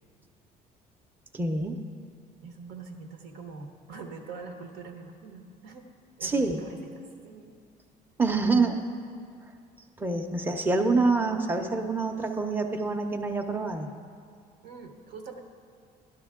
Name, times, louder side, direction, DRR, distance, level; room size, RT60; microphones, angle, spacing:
voice 1, 1.3-1.8 6.2-6.6 8.2-8.7 10.0-13.9, right 3 dB, 10° right, 4 dB, 0.6 m, -26 dB
voice 2, 2.4-5.9 6.2-7.6 14.6-15.4, right 4 dB, 85° right, 3 dB, 1.2 m, -44 dB
12.0 x 10.5 x 3.6 m, 2.2 s
cardioid pair, 110°, 17 cm